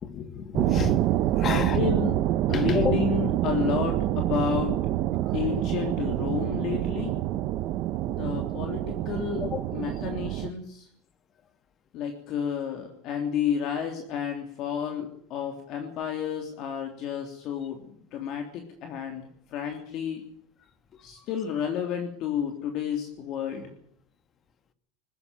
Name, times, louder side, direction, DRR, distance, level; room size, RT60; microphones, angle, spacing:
voice 1, 0.0-1.8 2.5-2.9 5.3-5.4 9.4-9.6 20.9-21.0, left 7 dB, 30° left, 2.0 m, -31 dB
sound 1, 0.5-10.5, right 14 dB, 50° right, 1.1 m, -27 dB
voice 2, 1.4-2.1 2.5-4.8 5.3-7.1 8.2-9.4 9.7-10.9 11.9-19.2 19.5-20.2 21.0-23.7, left 8 dB, 50° left, 3.3 m, -31 dB
21.0 x 14.0 x 9.6 m
supercardioid pair, 135°, 0 cm